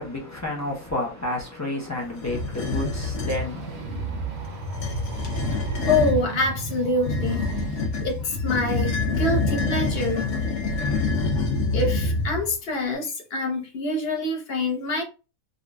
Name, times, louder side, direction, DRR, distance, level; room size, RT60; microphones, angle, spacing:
voice 1, 0.0-5.1, left 2 dB, 25° left, 0.4 m, -32 dB
sound 1, 2.2-3.5 4.6-6.2 7.0-12.5, left 3 dB, 80° left, 1.5 m, -26 dB
sound 2, 3.2-8.3, right 3 dB, 60° right, 0.7 m, -34 dB
voice 2, 5.9-7.5 8.0-10.3 10.8-15.0, left 2 dB, 45° left, 0.9 m, -26 dB
3.7 x 2.6 x 2.3 m
omnidirectional pair, 1.7 m